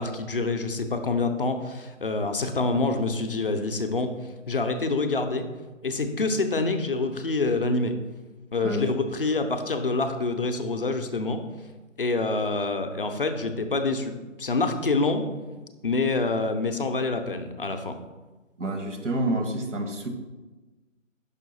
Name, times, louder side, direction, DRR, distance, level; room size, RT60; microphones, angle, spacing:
voice 1, 0.0-4.1 4.5-5.5 5.8-8.0 8.5-11.4 12.0-15.3 15.8-18.0, left 3 dB, 45° left, 7 dB, 0.5 m, -26 dB
voice 2, 8.6-8.9 18.6-20.1, right 1 dB, 65° right, 4 dB, 1.1 m, -28 dB
5.6 x 4.4 x 4.0 m, 1.2 s
figure-of-eight pair, 160°, 39 cm